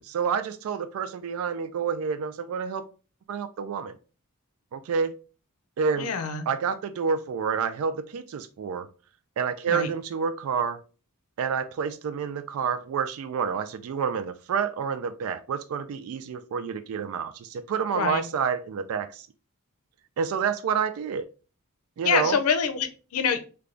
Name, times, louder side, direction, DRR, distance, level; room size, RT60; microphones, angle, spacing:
voice 1, 0.0-2.9 3.3-4.0 4.7-5.1 5.8-6.1 6.5-8.9 9.4-10.8 11.4-19.3 20.2-21.3 22.0-22.4, right 6 dB, 70° right, 10 dB, 0.3 m, -28 dB
voice 2, 6.0-6.5 9.7-9.9 17.9-18.2 22.0-23.4, left 6 dB, 85° left, 9 dB, 0.5 m, -25 dB
3.7 x 2.3 x 3.2 m, 0.35 s
head